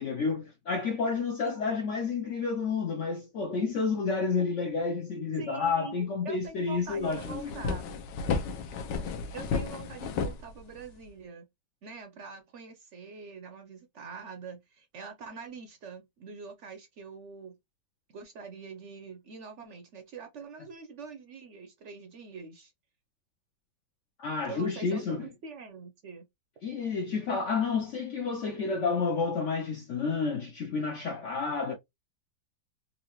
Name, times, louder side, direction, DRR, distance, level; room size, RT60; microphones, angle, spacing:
voice 1, 0.0-7.5 24.2-25.3 26.6-31.7, left 4 dB, 70° left, 0.7 m, -30 dB
voice 2, 5.4-7.9 8.9-9.0 9.3-11.5 11.8-17.5 18.1-22.7 24.5-26.2, right 5 dB, 70° right, 0.7 m, -44 dB
sound 1, 6.5-6.6 6.9-11.1, left 5 dB, 90° left, 1.3 m, -33 dB
3.8 x 2.7 x 2.9 m
omnidirectional pair, 1.9 m